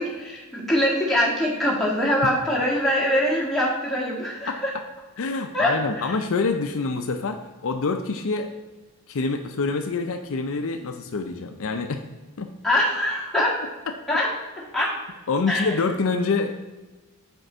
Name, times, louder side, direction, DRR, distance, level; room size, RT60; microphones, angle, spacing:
voice 1, 0.0-4.7 5.5-6.1 12.6-13.5 14.1-14.3 14.7-14.9 15.5-15.7, left 1 dB, ahead, -6 dB, 1.7 m, -23 dB
voice 2, 5.2-8.5 9.1-12.0 12.4-12.5 15.3-16.7, left 4 dB, 60° left, 6 dB, 0.5 m, -26 dB
5.2 x 4.5 x 6.0 m, 1.2 s
head